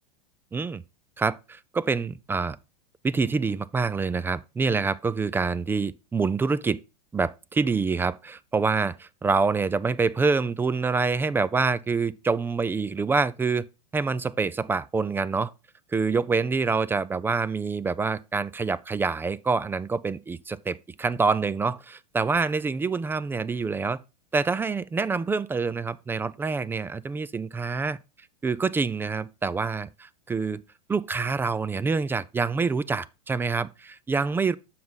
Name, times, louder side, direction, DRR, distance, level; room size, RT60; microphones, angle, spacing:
voice 1, 0.5-0.8 1.2-2.6 3.0-6.8 7.1-13.7 13.9-15.5 15.9-24.0 24.3-28.0 28.4-30.6 30.9-34.6, right 4 dB, 10° right, 0.3 m, -26 dB
7.4 x 5.6 x 3.9 m
hypercardioid pair, 100°, 21 cm